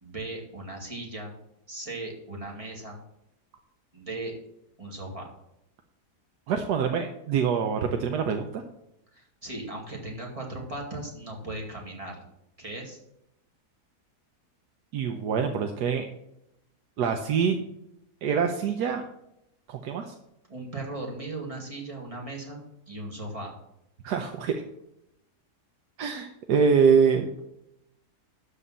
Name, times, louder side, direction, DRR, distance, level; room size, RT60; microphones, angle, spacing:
voice 1, 0.0-1.4 1.7-3.0 3.9-4.3 4.8-5.3 9.1-12.2 12.6-13.0 20.5-22.6 22.9-23.5, right 2 dB, 20° right, -1 dB, 2.2 m, -37 dB
voice 2, 6.5-8.6 14.9-16.0 17.0-17.6 18.2-19.0 19.7-20.1 24.0-24.6 26.0-27.3, right 6 dB, 85° right, 5 dB, 1.4 m, -25 dB
12.5 x 4.2 x 7.4 m, 0.83 s
omnidirectional pair, 1.7 m